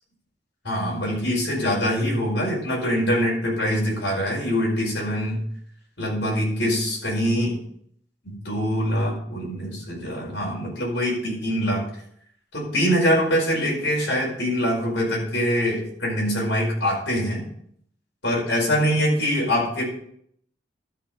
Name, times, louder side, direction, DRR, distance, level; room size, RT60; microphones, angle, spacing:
voice 1, 0.6-5.4 6.0-7.6 8.2-11.8 12.5-17.4 18.2-19.8, equal, 75° left, -3 dB, 5.2 m, -24 dB
12.5 x 5.1 x 6.9 m, 0.67 s
head